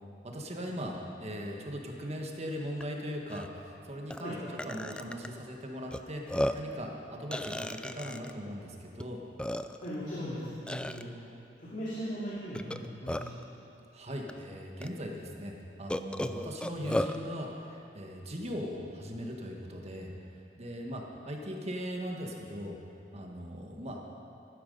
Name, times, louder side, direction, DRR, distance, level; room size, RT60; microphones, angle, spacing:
voice 1, 0.2-4.3 4.6-9.2 13.9-20.1 20.6-22.8 23.1-24.0, equal, 40° right, 1 dB, 1.6 m, -39 dB
Burping eructation, 2.8-2.9 3.3-3.5 4.1-4.2 4.6-5.3 5.9-6.0 6.3-6.7 7.3-8.3 9.0-9.1 9.4-9.9 10.7-11.0 12.5-13.4 14.3-14.4 14.8-14.9 15.9-17.2, left 1 dB, 5° left, 0.4 m, -34 dB
voice 2, 9.8-11.1 11.6-13.3, equal, 50° left, -8 dB, 2.6 m, -38 dB
15.5 x 12.0 x 5.4 m, 2.7 s
head